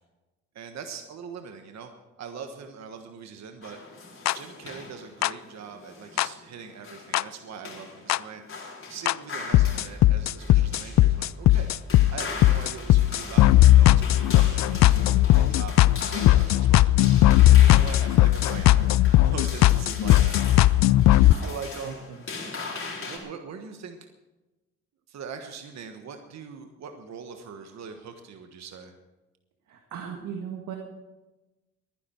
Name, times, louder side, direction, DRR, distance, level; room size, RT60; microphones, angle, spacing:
voice 1, 0.5-1.9 2.2-3.8 4.3-8.4 8.9-11.7 12.1-15.8 16.1-17.1 17.5-22.1 23.1-24.0 25.1-28.9, right 6 dB, 60° right, 5 dB, 1.4 m, -41 dB
sound 1, 3.6-23.2, left 4 dB, 45° left, 4.4 m, -40 dB
sound 2, 4.3-4.4 5.2-5.3 6.2-6.3 7.1-7.2 8.1-8.2 9.1-9.2 9.5-21.3, left 15 dB, 65° left, 0.4 m, -18 dB
voice 2, 21.8-22.2 29.7-30.8, right 7 dB, 75° right, 2 dB, 1.8 m, -38 dB
22.0 x 10.5 x 4.5 m, 1.1 s
cardioid pair, 90°, 30 cm